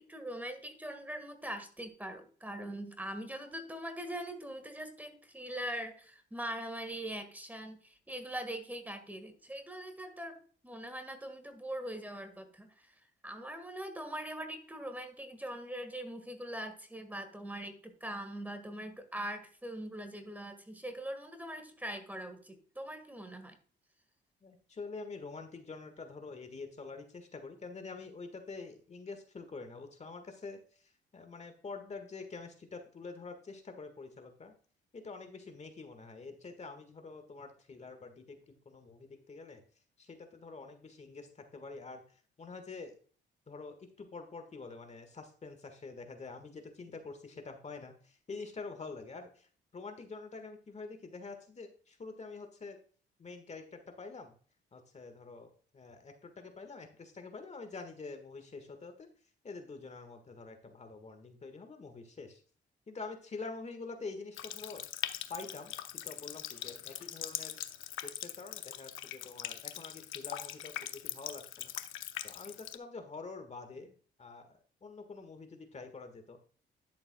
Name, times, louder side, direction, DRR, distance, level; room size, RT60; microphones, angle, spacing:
voice 1, 0.0-10.4 10.6-12.9 13.2-23.5, right 1 dB, 10° right, 7 dB, 1.6 m, -42 dB
voice 2, 24.4-34.5 34.9-39.6 40.0-43.0 43.5-52.8 53.2-54.3 54.7-59.1 59.4-62.4 62.9-64.8 65.3-67.6 68.0-71.7 72.2-76.4, left 4 dB, 35° left, 7 dB, 1.6 m, -46 dB
Water tap faucet, 64.3-72.8, left 12 dB, 90° left, 0.7 m, -42 dB
11.0 x 6.9 x 2.2 m, 0.44 s
cardioid pair, 90°, 20 cm